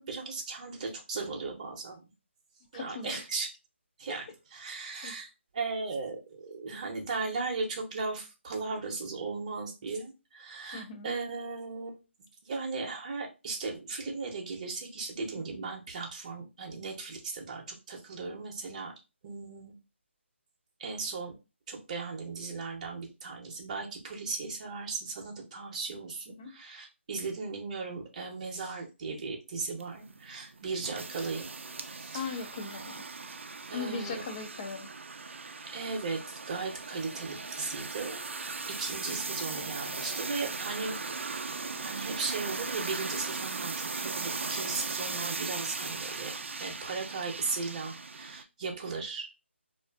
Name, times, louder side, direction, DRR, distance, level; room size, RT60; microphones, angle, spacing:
voice 1, 0.0-2.0 2.7-3.5 4.0-4.2 4.5-5.3 5.5-12.0 12.4-18.9 19.2-19.7 20.8-21.3 21.7-31.5 31.9-32.4 32.8-32.9 33.7-34.2 35.6-36.2 36.5-41.0 41.8-49.3, right 4 dB, 35° right, 1 dB, 0.7 m, -37 dB
voice 2, 2.7-3.2 4.1-4.2 5.0-5.1 10.7-11.1 26.4-26.6 32.1-32.9 33.7-34.9, left 5 dB, 25° left, 5 dB, 0.4 m, -38 dB
sound 1, 29.8-48.4, right 4 dB, 70° right, 0.3 m, -38 dB
2.5 x 2.4 x 2.3 m, 0.27 s
figure-of-eight pair, 155°, 7 cm